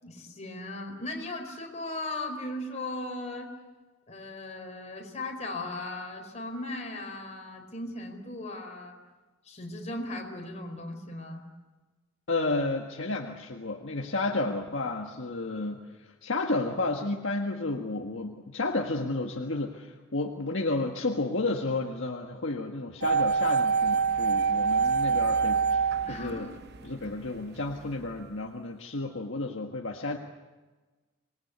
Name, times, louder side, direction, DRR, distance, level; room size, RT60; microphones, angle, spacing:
voice 1, 0.0-3.5 4.1-9.0 9.4-11.4 26.0-26.5, left 2 dB, 35° left, 2 dB, 4.6 m, -37 dB
voice 2, 12.3-26.5 26.8-30.2, left 2 dB, 60° left, 1 dB, 1.6 m, -32 dB
sound 1, 23.0-27.1 27.4-27.5, right 5 dB, 50° right, 0.9 m, -25 dB
26.5 x 21.0 x 8.3 m, 1.2 s
head